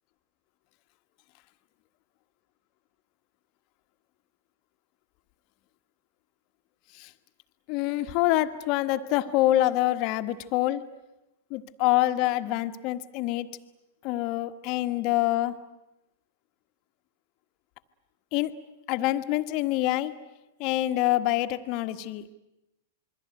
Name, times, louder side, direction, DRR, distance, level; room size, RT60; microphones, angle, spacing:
voice 1, 7.7-10.9 11.5-13.6 14.0-15.6 18.3-20.3 20.6-22.3, left 15 dB, 45° left, 10 dB, 1.5 m, -26 dB
27.0 x 22.5 x 9.3 m, 0.92 s
hypercardioid pair, 105°, 0 cm